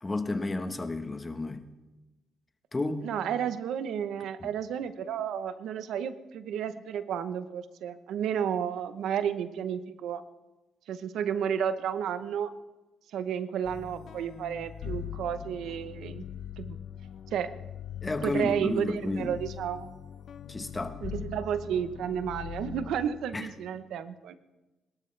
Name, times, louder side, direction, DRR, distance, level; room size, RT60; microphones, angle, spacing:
voice 1, 0.0-1.7 2.7-3.1 4.4-4.5 18.0-19.4 20.5-21.0 23.3-23.5, left 2 dB, 20° left, 1.2 m, -32 dB
voice 2, 3.0-10.2 10.9-12.5 13.1-16.2 16.6-16.8 17.3-17.5 18.2-19.9 21.0-24.4, right 8 dB, 80° right, 0.9 m, -32 dB
sound 1, 13.6-23.1, left 9 dB, 65° left, 0.8 m, -42 dB
23.5 x 13.0 x 3.4 m
cardioid pair, 90°, 0 cm